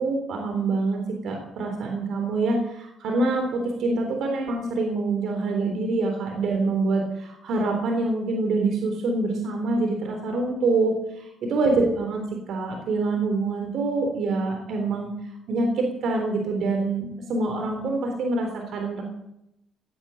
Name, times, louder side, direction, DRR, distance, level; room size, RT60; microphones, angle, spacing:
voice 1, 0.0-12.2 12.5-15.1 15.5-19.0, right 3 dB, 75° right, 2 dB, 3.6 m, -25 dB
17.5 x 8.7 x 9.0 m, 0.82 s
cardioid pair, 90°, 0 cm